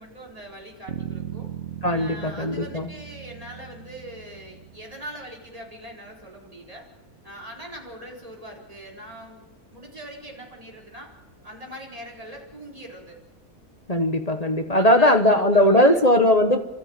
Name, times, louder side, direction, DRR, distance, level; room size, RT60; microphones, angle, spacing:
voice 1, 0.0-1.5 1.9-6.8 7.2-11.1 11.4-13.2 14.7-16.0, equal, 25° right, -1 dB, 4.6 m, -41 dB
sound 1, 0.9-5.2, right 9 dB, 50° right, 1.4 m, -38 dB
voice 2, 1.8-2.9 13.9-16.6, left 1 dB, 30° left, 7 dB, 1.2 m, -19 dB
29.5 x 13.5 x 9.0 m, 1.1 s
omnidirectional pair, 1.6 m